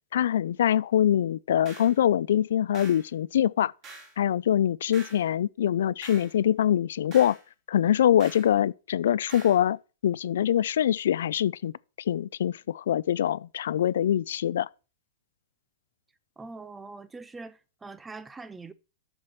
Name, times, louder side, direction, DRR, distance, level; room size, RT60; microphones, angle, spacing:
voice 1, 0.1-3.7 4.2-7.4 7.7-9.8 10.0-11.7 12.1-14.7, left 10 dB, 75° left, 0.3 m, -24 dB
sound 1, 1.7-2.0 2.7-3.1 3.8-4.2 4.9-5.3 6.0-6.3 7.1-7.4 8.2-8.5 9.3-9.6, right 3 dB, 30° right, 2.5 m, -45 dB
voice 2, 16.4-18.7, right 3 dB, 10° right, 0.4 m, -43 dB
7.6 x 6.0 x 5.7 m
supercardioid pair, 160°, 0 cm